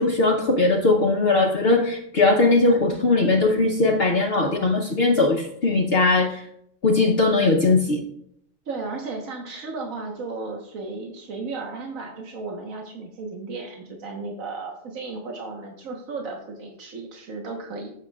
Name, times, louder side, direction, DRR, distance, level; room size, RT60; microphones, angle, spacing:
voice 1, 0.0-6.4 6.8-8.0, left 3 dB, 50° left, 1 dB, 1.0 m, -20 dB
voice 2, 8.7-17.9, right 3 dB, 80° right, 1 dB, 1.6 m, -34 dB
14.0 x 6.6 x 2.4 m, 0.72 s
omnidirectional pair, 1.4 m